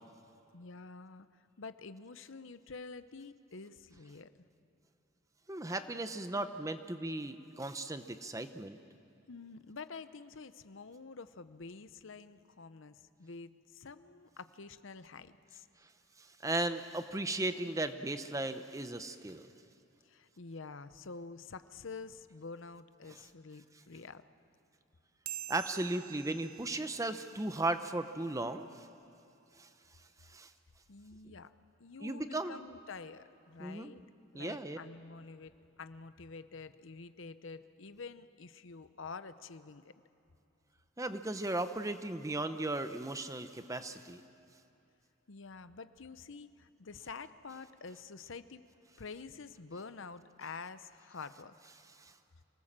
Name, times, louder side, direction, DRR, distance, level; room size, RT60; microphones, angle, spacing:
voice 1, 0.5-4.5 9.3-15.7 20.0-24.2 30.9-31.5 31.8-34.0 34.3-39.9 45.3-48.6 49.0-51.6, left 4 dB, 65° left, 12 dB, 0.8 m, -48 dB
voice 2, 5.5-8.8 16.2-19.5 25.5-28.9 29.6-29.7 30.3-30.5 32.0-32.6 33.6-33.9 34.3-34.8 41.0-44.2 52.0-52.1, right 2 dB, 15° right, 9 dB, 0.7 m, -36 dB
sound 1, 25.3-28.1, right 14 dB, 70° right, 0.6 m, -47 dB
25.5 x 18.5 x 7.4 m, 2.9 s
head